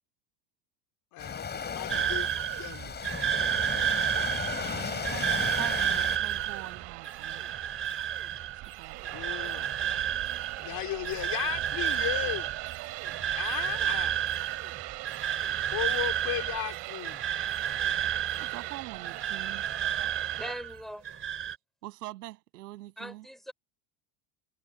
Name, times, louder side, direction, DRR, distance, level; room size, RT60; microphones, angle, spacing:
voice 1, 1.1-2.3 2.5-3.0 9.1-9.7 10.6-12.5 13.3-14.3 15.7-17.2, left 15 dB, 50° left, 4.2 m, -35 dB
Waves surf, 1.2-6.2, left 6 dB, 20° left, 6.4 m, -35 dB
sound 1, 1.9-20.8 21.0-21.6, right 10 dB, 30° right, 3.5 m, -31 dB
voice 2, 4.5-7.5 8.6-9.1 18.4-19.6 21.8-23.3, right 18 dB, 85° right, 7.8 m, -44 dB
sound 2, 4.6-20.5, right 24 dB, 60° right, 4.1 m, -41 dB
voice 3, 20.4-21.0 23.0-23.5, equal, ahead, 5.5 m, -40 dB
supercardioid pair, 120°, 46 cm